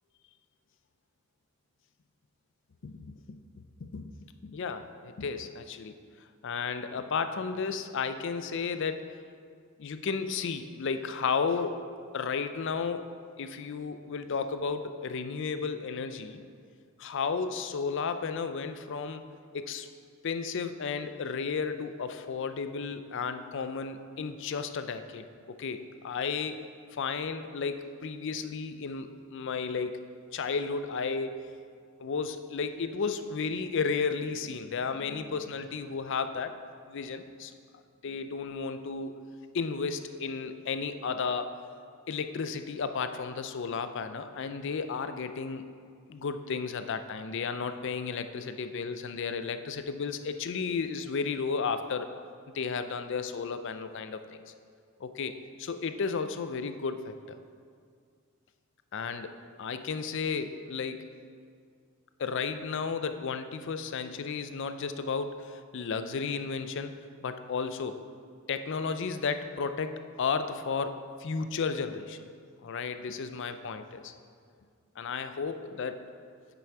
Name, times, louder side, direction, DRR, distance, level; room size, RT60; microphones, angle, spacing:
voice 1, 2.8-6.0 6.4-9.1 9.8-11.9 12.1-13.1 13.4-16.4 17.0-19.2 19.5-19.9 20.2-26.6 26.9-30.0 30.3-31.5 32.0-36.5 36.9-37.5 38.0-39.1 39.5-41.5 42.1-45.6 46.1-52.1 52.5-54.2 55.0-55.3 55.6-57.4 58.9-61.0 62.2-68.0 68.5-72.2 72.6-74.1 75.0-76.0, left 5 dB, 60° left, 10 dB, 0.5 m, -33 dB
8.8 x 6.1 x 4.7 m, 2.1 s
head